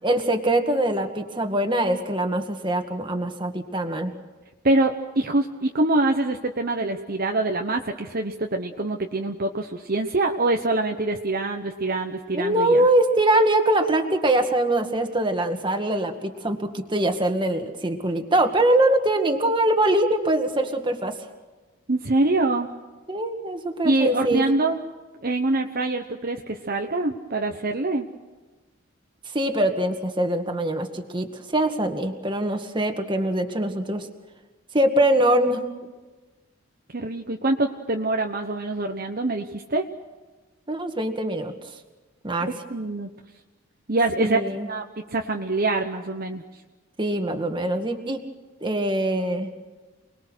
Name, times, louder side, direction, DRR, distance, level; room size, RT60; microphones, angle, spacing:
voice 1, 0.0-4.1 12.3-21.2 23.1-24.4 29.3-34.1 34.7-35.7 40.7-41.5 42.2-42.5 44.2-44.7 47.0-48.3 48.6-49.5, right 1 dB, 25° right, 5 dB, 1.9 m, -23 dB
voice 2, 4.6-12.9 21.9-22.7 23.8-24.8 25.2-28.1 36.9-39.9 42.5-43.1 43.9-44.4 44.7-44.8 45.1-46.4, right 2 dB, 45° right, 3 dB, 1.1 m, -24 dB
29.0 x 21.0 x 6.4 m, 1.2 s
head